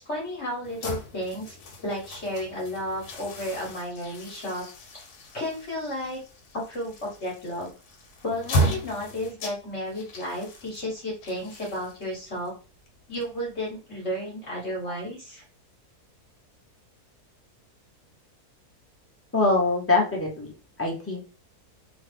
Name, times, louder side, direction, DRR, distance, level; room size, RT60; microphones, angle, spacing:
voice 1, 0.0-1.6 1.8-4.6 4.9-5.0 5.3-6.2 6.5-7.7 8.2-12.5 13.1-15.4, left 1 dB, 50° left, -4 dB, 1.2 m, -32 dB
sound 1, 0.6-13.7, right 1 dB, 80° left, 1.3 m, -35 dB
voice 2, 19.3-21.2, left 3 dB, 15° left, -3 dB, 0.5 m, -24 dB
2.9 x 2.3 x 3.3 m, 0.35 s
omnidirectional pair, 1.6 m